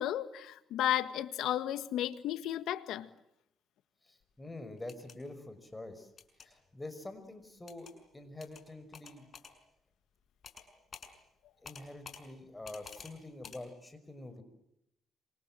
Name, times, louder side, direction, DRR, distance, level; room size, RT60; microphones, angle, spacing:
voice 1, 0.0-3.1, left 12 dB, 85° left, 1.6 m, -33 dB
voice 2, 4.0-6.1 6.4-9.3 11.6-14.4, left 2 dB, 15° left, 5.8 m, -46 dB
sound 1, 4.8-5.2 6.2-6.5 7.7-7.9 8.4-8.6 8.9-9.5 10.4-10.7 10.9-11.1 11.6-12.2 12.6-13.1 13.4-13.6, left 6 dB, 45° left, 6.2 m, -49 dB
27.5 x 27.0 x 7.6 m
cardioid pair, 90°, 0 cm